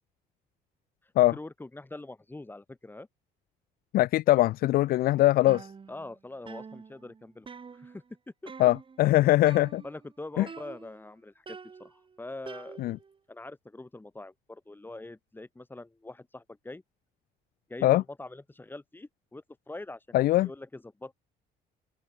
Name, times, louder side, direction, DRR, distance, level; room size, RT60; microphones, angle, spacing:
voice 1, 1.2-3.1 5.9-7.5 7.7-8.0 8.4-8.5 9.8-12.8 13.3-16.8 17.7-20.2 20.4-21.2, left 2 dB, 10° left, 4.0 m, -43 dB
voice 2, 3.9-5.7 8.6-9.8 10.4-10.5 12.8-13.0 17.8-18.0 20.1-20.5, left 16 dB, 60° left, 0.4 m, -22 dB
sound 1, 5.5-6.2 6.5-8.2 8.5-9.0 9.5-10.1 10.5-11.1 11.5-13.2, right 5 dB, 30° right, 4.4 m, -47 dB
open air
cardioid pair, 110°, 17 cm